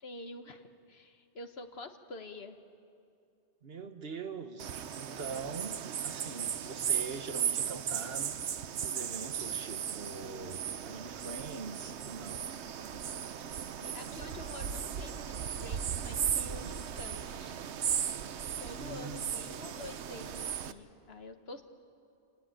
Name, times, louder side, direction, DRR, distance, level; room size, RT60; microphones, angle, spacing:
voice 1, 0.0-2.6 13.8-17.6 18.6-21.6, left 2 dB, 65° left, 7 dB, 1.5 m, -47 dB
voice 2, 3.6-8.3 8.7-12.4 18.5-19.2, right 4 dB, 60° right, 8 dB, 1.4 m, -43 dB
sound 1, 4.6-20.7, right 8 dB, 80° right, 1.1 m, -36 dB
27.0 x 18.5 x 9.0 m, 2.5 s
omnidirectional pair, 1.1 m